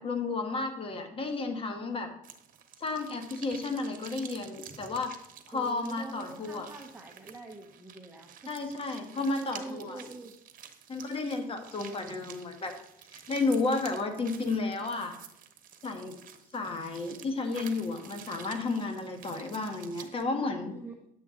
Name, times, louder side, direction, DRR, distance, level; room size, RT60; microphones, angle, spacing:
voice 1, 0.0-2.1 2.8-5.2 5.5-6.7 8.5-10.0 10.9-12.7 13.1-15.1 15.8-16.2 16.5-20.7, left 3 dB, 35° left, 5 dB, 1.5 m, -32 dB
sound 1, 2.2-20.2, right 8 dB, 55° right, 1.1 m, -50 dB
voice 2, 5.5-8.5 9.2-10.3 20.7-20.9, right 3 dB, 10° right, 2 dB, 0.8 m, -44 dB
9.7 x 7.4 x 3.8 m, 0.80 s
cardioid pair, 110°, 17 cm